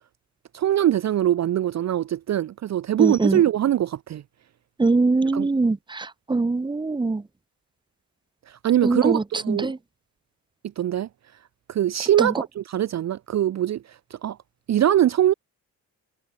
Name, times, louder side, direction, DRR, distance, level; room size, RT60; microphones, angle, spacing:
voice 1, 0.5-4.2 5.3-5.5 8.5-9.7 10.8-11.1 11.7-14.4 14.7-15.3, right 11 dB, 45° right, 0.6 m, -22 dB
voice 2, 3.0-3.4 4.8-7.2 8.8-9.8 12.2-12.3, right 3 dB, 10° right, 0.9 m, -23 dB
cardioid pair, 105°, 37 cm